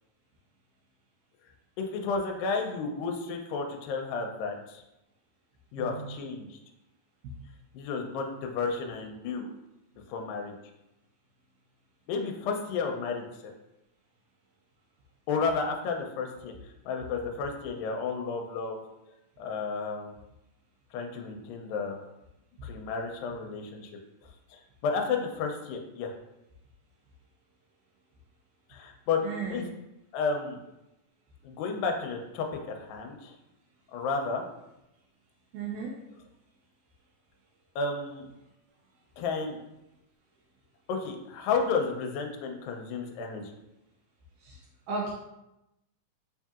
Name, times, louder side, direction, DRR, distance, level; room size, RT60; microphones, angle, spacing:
voice 1, 1.8-4.8 5.7-6.6 7.7-9.5 10.1-10.5 12.1-13.5 15.3-16.5 16.9-18.8 19.4-20.1 20.9-22.0 22.6-23.9 24.5-26.1 28.7-29.2 29.5-29.6 30.1-30.6 31.4-33.3 33.9-34.4 37.8-38.3 39.2-39.6 40.9-43.5, left 4 dB, 85° left, 2 dB, 2.2 m, -32 dB
voice 2, 5.8-6.2 7.2-7.3 29.2-29.7 35.5-35.9 44.4-44.6 44.9-45.1, right 4 dB, 80° right, -2 dB, 1.9 m, -35 dB
5.2 x 2.7 x 2.3 m, 0.90 s
omnidirectional pair, 4.0 m